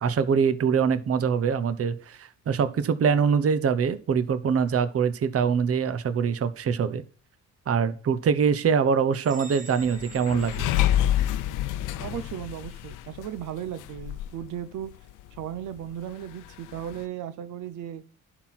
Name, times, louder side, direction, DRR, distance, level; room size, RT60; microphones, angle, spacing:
voice 1, 0.0-7.0 7.7-10.7, right 6 dB, 50° right, 13 dB, 1.0 m, -24 dB
sound 1, 9.1-11.7, right 4 dB, 25° right, 2.4 m, -47 dB
sound 2, 9.8-14.5 14.8-14.9 15.2-15.5 15.8-15.9 16.7-17.0, left 12 dB, 90° left, 0.7 m, -28 dB
voice 2, 12.0-14.9 15.3-18.0, right 10 dB, 85° right, 12 dB, 0.9 m, -36 dB
11.0 x 4.5 x 5.9 m, 0.38 s
cardioid pair, 90°, 30 cm